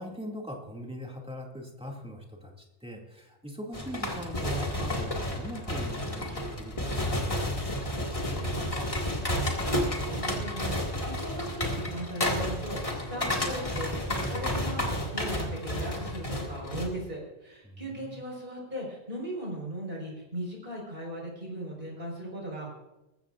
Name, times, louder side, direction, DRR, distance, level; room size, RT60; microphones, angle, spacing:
voice 1, 0.0-8.9 17.6-18.2, equal, 5° right, -1 dB, 2.2 m, -41 dB
sound 1, 3.7-16.9, left 1 dB, 25° left, 2.0 m, -31 dB
voice 2, 9.6-22.7, right 1 dB, 45° right, -1 dB, 4.9 m, -38 dB
20.0 x 15.5 x 2.5 m, 0.97 s
omnidirectional pair, 1.3 m